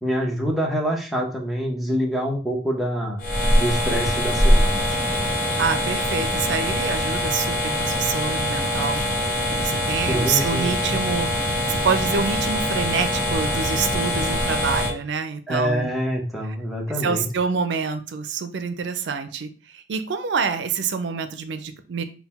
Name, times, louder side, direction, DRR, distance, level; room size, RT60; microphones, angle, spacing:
voice 1, 0.0-3.2 3.6-5.1 10.1-10.7 15.5-17.3, equal, ahead, -2 dB, 0.8 m, -26 dB
sound 1, 3.2-14.9, left 1 dB, 50° left, 0.8 m, -23 dB
voice 2, 5.6-9.0 9.5-15.9 17.0-22.0, right 5 dB, 85° right, 9 dB, 0.4 m, -27 dB
3.9 x 2.2 x 4.1 m, 0.37 s
head